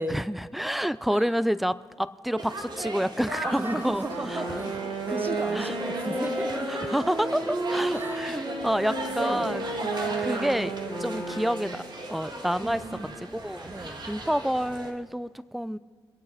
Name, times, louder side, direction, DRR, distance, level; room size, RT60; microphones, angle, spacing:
voice 1, 0.1-4.4 5.5-5.7 6.7-9.6 10.0-10.7 11.0-11.8 12.1-12.8 13.3-15.8, equal, ahead, 17 dB, 0.6 m, -29 dB
sound 1, 2.4-14.9, right 2 dB, 45° right, 2.4 m, -37 dB
voice 2, 3.4-6.9 7.9-8.3 9.1-9.5 12.6-13.1 13.6-14.0, right 1 dB, 20° right, 8 dB, 1.5 m, -35 dB
Wind instrument woodwind instrument, 4.0-11.9, right 2 dB, 60° right, 2.4 m, -32 dB
24.5 x 8.6 x 5.8 m, 1.5 s
supercardioid pair, 45°, 10 cm